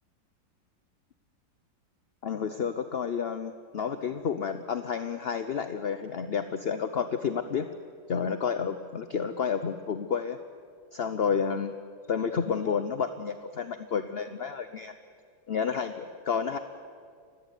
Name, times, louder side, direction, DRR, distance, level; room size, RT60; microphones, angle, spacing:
voice 1, 2.2-7.7 8.1-10.4 10.9-11.7 12.1-15.0 15.5-16.6, left 6 dB, 50° left, 10 dB, 0.8 m, -30 dB
29.5 x 16.5 x 9.6 m, 2.2 s
omnidirectional pair, 2.0 m